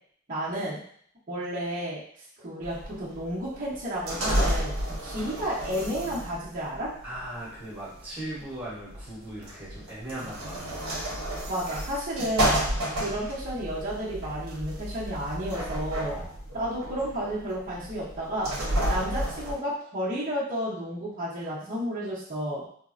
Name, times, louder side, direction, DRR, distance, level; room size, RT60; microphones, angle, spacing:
voice 1, 0.3-0.8 1.3-2.0 2.4-6.9 11.5-12.6 12.9-16.1 16.5-18.5 18.9-22.6, equal, 40° right, -10 dB, 0.7 m, -32 dB
sound 1, 2.6-19.5, equal, 80° right, 0.7 m, -31 dB
voice 2, 7.0-11.0 16.1-16.3, right 1 dB, 10° right, -9 dB, 1.1 m, -39 dB
3.5 x 2.0 x 2.4 m, 0.62 s
head